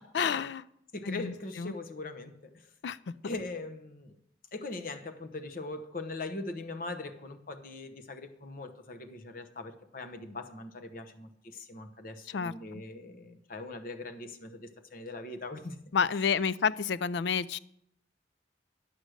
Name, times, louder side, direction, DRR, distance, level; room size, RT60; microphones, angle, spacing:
voice 1, 0.1-0.6 1.1-1.7 2.8-3.1 12.3-12.8 15.9-17.6, left 6 dB, 75° left, 18 dB, 0.4 m, -30 dB
voice 2, 0.9-2.3 3.2-4.2 4.5-15.8, left 2 dB, 50° left, 6 dB, 1.0 m, -41 dB
10.5 x 6.3 x 6.4 m, 0.75 s
head